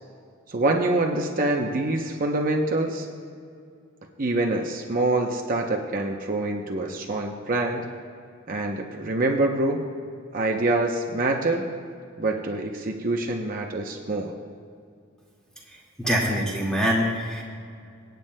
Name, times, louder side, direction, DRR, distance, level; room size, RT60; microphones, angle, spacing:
voice 1, 0.5-3.1 4.2-7.9 8.5-9.8 10.3-11.6 12.2-14.3, right 2 dB, 45° right, 1 dB, 0.7 m, -25 dB
voice 2, 16.0-17.4, equal, 5° left, -4 dB, 1.9 m, -24 dB
26.0 x 9.2 x 2.2 m, 2.3 s
head